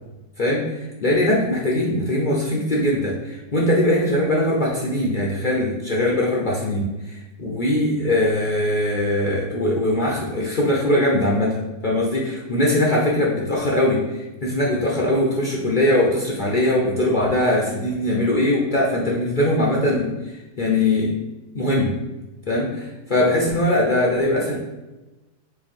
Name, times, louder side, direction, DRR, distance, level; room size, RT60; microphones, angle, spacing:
voice 1, 0.4-11.6 11.8-21.1 21.5-21.9 22.5-24.6, left 1 dB, 65° left, -3 dB, 0.4 m, -21 dB
4.5 x 2.6 x 4.2 m, 1.1 s
omnidirectional pair, 1.8 m